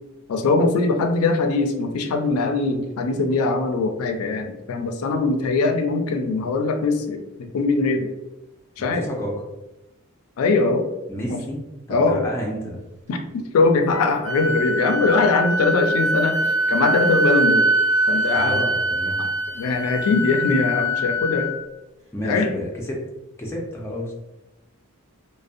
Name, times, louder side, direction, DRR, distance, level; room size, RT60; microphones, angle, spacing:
voice 1, 0.3-8.1 8.8-9.1 10.4-10.8 11.3-11.4 11.9-12.2 13.1-17.7 18.1-18.7 19.2-19.3 19.6-21.5 22.2-22.5, left 3 dB, 90° left, 5 dB, 0.3 m, -21 dB
voice 2, 9.0-9.3 11.1-11.6 11.9-12.8 18.3-19.2 22.1-23.0 23.4-24.1, equal, 10° left, -2 dB, 0.4 m, -30 dB
Wind instrument woodwind instrument, 13.9-21.6, right 1 dB, 35° right, 0.8 m, -23 dB
2.5 x 2.0 x 2.5 m, 0.97 s
head